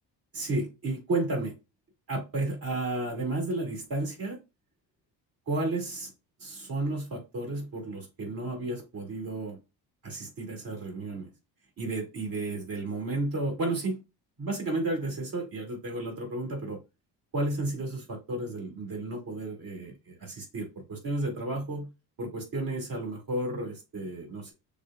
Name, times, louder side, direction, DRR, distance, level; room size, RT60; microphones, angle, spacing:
voice 1, 0.3-1.5 2.1-4.4 5.5-6.1 6.4-9.6 10.0-11.3 11.8-14.0 14.4-16.8 17.3-21.9 22.2-24.5, right 2 dB, 50° right, 2.4 m, -32 dB
6.5 x 2.4 x 2.4 m
cardioid pair, 115°, 44 cm